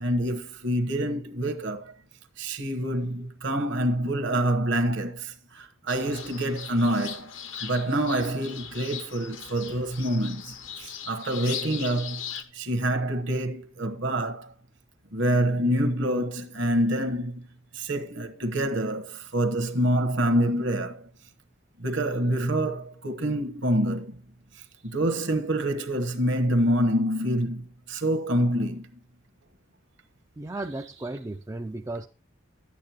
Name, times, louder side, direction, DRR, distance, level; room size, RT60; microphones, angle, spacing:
voice 1, 0.0-1.9 2.4-7.3 7.6-12.2 12.5-14.5 15.1-17.4 17.7-21.1 21.8-24.1 24.9-28.9 30.8-30.9, right 1 dB, 60° right, 1.2 m, -26 dB
sound 1, 5.9-12.4, left 8 dB, 70° left, 1.0 m, -39 dB
voice 2, 30.4-32.1, right 2 dB, 15° right, 0.4 m, -35 dB
11.0 x 8.6 x 2.9 m
head